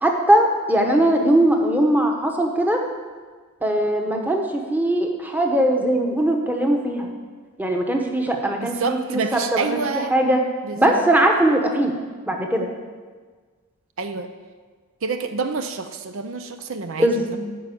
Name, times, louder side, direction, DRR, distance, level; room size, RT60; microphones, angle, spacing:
voice 1, 0.0-2.8 3.6-7.1 7.6-9.8 10.1-10.4 10.8-11.9 12.3-12.7 17.0-17.4, right 1 dB, 10° right, 2 dB, 1.0 m, -20 dB
voice 2, 8.6-10.1 10.6-10.9 14.0-14.3 15.0-17.4, right 4 dB, 65° right, 7 dB, 0.6 m, -28 dB
9.4 x 6.0 x 8.5 m, 1.5 s
head